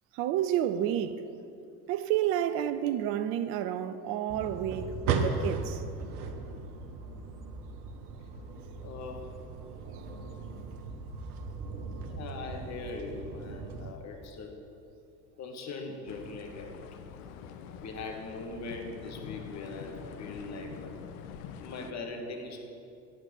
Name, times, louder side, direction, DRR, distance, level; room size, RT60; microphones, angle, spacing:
voice 1, 0.1-1.2 1.9-5.8, right 11 dB, 30° right, 0.4 m, -30 dB
sound 1, 4.3-13.9, right 4 dB, 60° right, 1.2 m, -37 dB
voice 2, 8.8-9.3 12.1-14.5 15.4-16.7 17.8-21.0 21.5-22.6, left 3 dB, 35° left, 1.7 m, -40 dB
sound 2, 16.1-21.9, left 7 dB, 50° left, 0.8 m, -45 dB
9.5 x 8.0 x 7.5 m
figure-of-eight pair, 70°, 49 cm